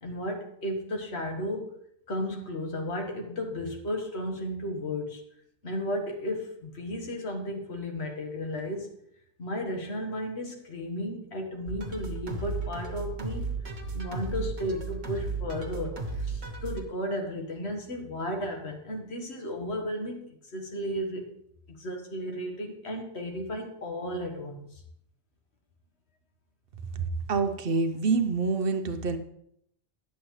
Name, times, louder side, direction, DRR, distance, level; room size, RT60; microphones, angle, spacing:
voice 1, 0.0-1.7 2.1-5.2 5.6-8.9 9.4-13.6 13.9-21.3 21.7-24.8, equal, 80° left, 2 dB, 1.6 m, -34 dB
sound 1, 11.7-16.8, right 4 dB, 85° right, 1.4 m, -34 dB
voice 2, 27.3-29.2, right 4 dB, 60° right, 8 dB, 0.9 m, -26 dB
10.5 x 7.4 x 3.1 m, 0.72 s
omnidirectional pair, 1.1 m